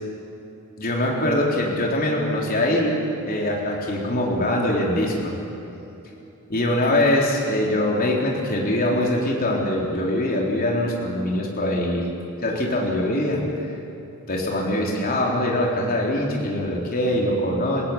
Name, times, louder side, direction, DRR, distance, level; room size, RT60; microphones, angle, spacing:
voice 1, 0.8-3.0 3.3-5.4 6.5-12.1 12.4-13.7 14.3-17.8, left 1 dB, 40° left, -2 dB, 3.9 m, -23 dB
29.5 x 17.0 x 8.7 m, 2.9 s
head